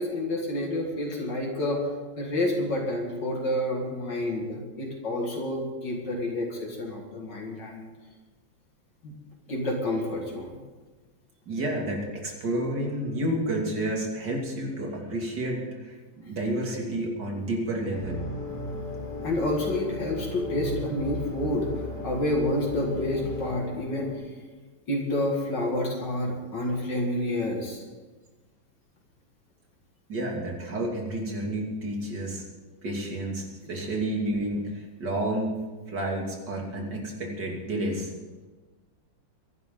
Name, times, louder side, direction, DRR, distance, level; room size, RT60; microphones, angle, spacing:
voice 1, 0.0-1.8 2.2-7.9 9.0-9.1 9.5-10.5 19.2-21.7 22.0-24.1 24.9-27.8, left 1 dB, 65° left, -1 dB, 2.7 m, -29 dB
voice 2, 11.5-18.2 30.1-32.4 32.8-35.5 35.9-38.1, right 1 dB, 60° right, -1 dB, 3.3 m, -30 dB
sound 1, 17.9-24.1, left 1 dB, 10° left, 4.6 m, -35 dB
23.5 x 11.5 x 3.9 m, 1.3 s
omnidirectional pair, 2.1 m